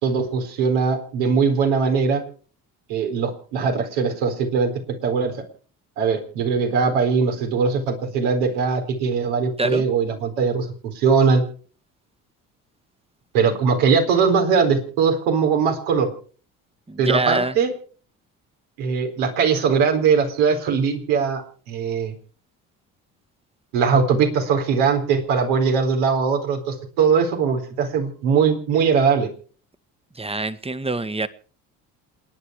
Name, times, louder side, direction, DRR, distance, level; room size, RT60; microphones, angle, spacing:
voice 1, 0.0-2.2 2.9-5.3 6.0-11.4 13.3-16.1 17.0-17.7 18.8-21.4 21.7-22.1 23.7-29.3, right 5 dB, 75° right, 4.2 m, -20 dB
voice 2, 16.9-17.5 30.1-31.3, right 2 dB, 15° right, 1.6 m, -25 dB
28.5 x 10.0 x 4.8 m
hypercardioid pair, 55°, 44 cm